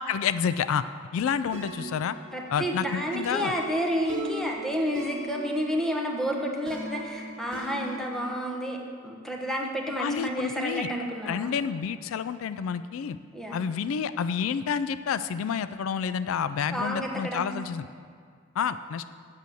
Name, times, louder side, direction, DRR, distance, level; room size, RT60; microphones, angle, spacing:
voice 1, 0.1-0.9 1.1-2.2 2.5-3.5 10.0-10.9 11.3-13.2 13.5-17.9 18.6-19.0, left 7 dB, 75° left, 14 dB, 0.3 m, -29 dB
sound 1, 1.5-8.4, right 1 dB, 65° right, 1.1 m, -40 dB
voice 2, 2.3-8.8 9.0-11.5 13.3-13.6 16.7-17.5, equal, ahead, 0 dB, 1.1 m, -30 dB
8.2 x 6.8 x 7.7 m, 2.1 s
head